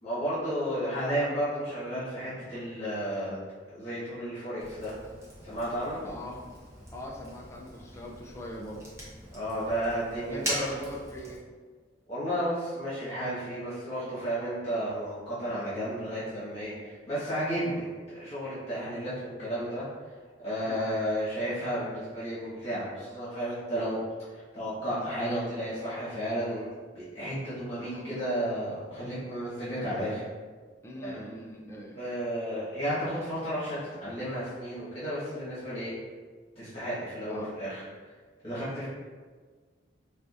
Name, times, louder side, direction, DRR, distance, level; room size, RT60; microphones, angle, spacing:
voice 1, 0.0-3.4 3.7-4.9 5.4-6.0 9.3-10.7 12.1-19.8 20.4-24.0 24.3-30.2 31.0-31.2 31.9-35.9 36.5-37.8 38.4-38.9, equal, 35° left, -12 dB, 1.3 m, -33 dB
Fire, 4.6-11.4, equal, 15° right, 0.7 m, -41 dB
voice 2, 6.0-6.4 6.9-8.8 10.3-11.4 20.6-21.0 27.8-28.2 30.8-32.0 37.3-37.5, equal, 15° left, -2 dB, 0.4 m, -41 dB
4.4 x 2.5 x 2.5 m, 1.5 s
head